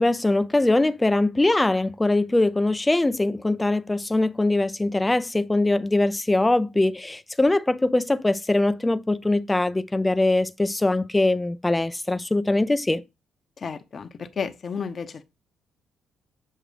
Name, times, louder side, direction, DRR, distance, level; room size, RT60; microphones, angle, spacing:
voice 1, 0.0-13.0, left 2 dB, 15° left, 0.5 m, -22 dB
voice 2, 13.6-15.2, left 6 dB, 45° left, 0.8 m, -32 dB
7.6 x 2.6 x 5.1 m
cardioid pair, 90°, 0 cm